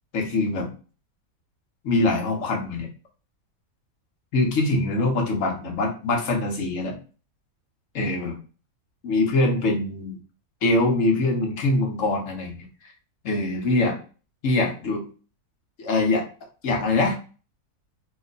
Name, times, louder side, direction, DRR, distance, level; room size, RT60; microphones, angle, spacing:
voice 1, 0.1-0.7 1.8-2.9 4.3-7.0 7.9-8.4 9.0-10.2 10.6-12.7 13.2-14.0 14.4-15.1 15.8-16.2 16.6-17.2, left 2 dB, 60° left, 2 dB, 1.1 m, -23 dB
3.0 x 2.1 x 3.9 m, 0.35 s
omnidirectional pair, 1.7 m